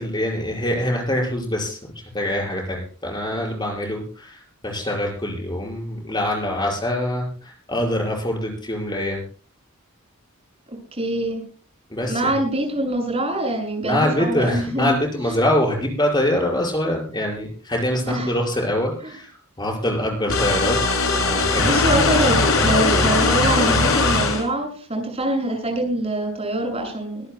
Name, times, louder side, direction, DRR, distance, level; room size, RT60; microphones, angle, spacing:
voice 1, 0.0-9.2 11.9-12.3 13.8-21.7, left 1 dB, 20° left, 0 dB, 5.6 m, -24 dB
voice 2, 10.9-11.4 12.0-14.9 15.2-15.3 18.0-18.3 19.0-19.1 21.6-27.2, right 1 dB, 30° right, 2 dB, 6.5 m, -24 dB
sound 1, 20.3-24.4, left 3 dB, 70° left, 7.1 m, -19 dB
24.0 x 17.5 x 2.2 m, 0.38 s
head